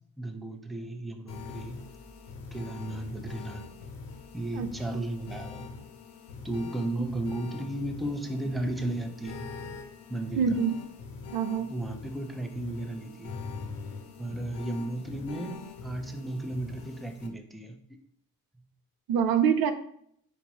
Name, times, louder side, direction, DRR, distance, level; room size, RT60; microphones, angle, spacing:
voice 1, 0.2-1.8 2.5-3.6 4.3-5.7 6.4-9.5 10.1-10.6 11.7-13.4 14.2-17.8, right 1 dB, ahead, 5 dB, 0.4 m, -34 dB
sound 1, 1.3-17.3, left 4 dB, 80° left, 0.7 m, -43 dB
voice 2, 4.5-5.1 6.9-7.1 10.4-10.8 11.3-11.7 19.1-19.7, right 7 dB, 90° right, 9 dB, 0.5 m, -26 dB
4.0 x 3.4 x 2.9 m, 0.66 s
cardioid pair, 95°, 35 cm